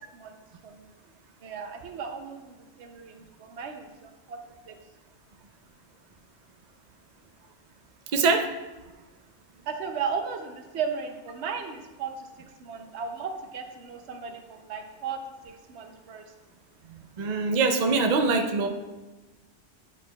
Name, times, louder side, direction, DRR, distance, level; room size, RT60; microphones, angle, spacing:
voice 1, 0.1-0.9 1.4-4.4 4.7-4.8 9.7-12.3 12.6-15.2 15.4-16.3, right 6 dB, 75° right, 5 dB, 0.9 m, -36 dB
voice 2, 8.1-8.5 16.9-18.7, right 4 dB, 50° right, 5 dB, 0.5 m, -24 dB
8.6 x 4.9 x 2.3 m, 1.2 s
omnidirectional pair, 1.2 m